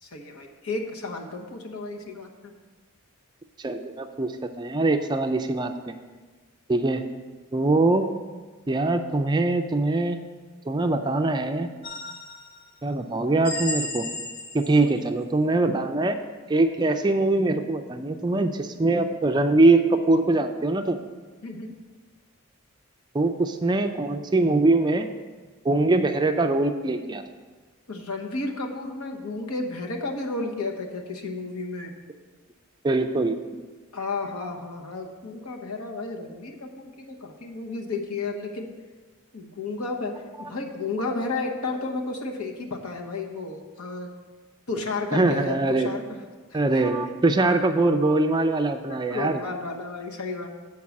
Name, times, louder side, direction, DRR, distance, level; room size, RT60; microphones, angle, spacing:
voice 1, 0.0-2.5 14.8-14.9 21.4-21.7 27.9-31.9 33.9-38.7 39.3-44.1 44.7-46.0 46.5-46.8 48.8-50.5, left 3 dB, 80° left, 2 dB, 1.0 m, -32 dB
voice 2, 3.6-5.7 6.7-7.0 7.5-8.1 8.7-10.2 10.7-11.7 12.8-14.1 14.5-16.2 16.5-21.0 23.1-25.1 25.6-27.2 32.8-33.4 45.1-45.9 46.5-49.4, right 2 dB, 20° right, 6 dB, 0.3 m, -22 dB
sound 1, 11.8-12.6 13.4-14.9, left 2 dB, 45° left, 1.0 m, -33 dB
7.4 x 4.6 x 7.0 m, 1.4 s
head